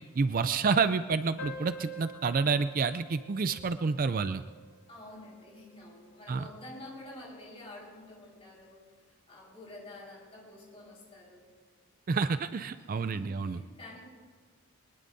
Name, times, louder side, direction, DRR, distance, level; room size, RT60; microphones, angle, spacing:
voice 1, 0.0-4.4 6.3-6.5 12.1-13.6, right 5 dB, 40° right, 12 dB, 0.4 m, -29 dB
sound 1, 1.4-6.4, equal, 70° left, 3.8 m, -48 dB
voice 2, 4.9-11.5 12.8-14.0, left 1 dB, 25° left, -4 dB, 4.9 m, -49 dB
22.5 x 20.5 x 2.7 m, 1.5 s
head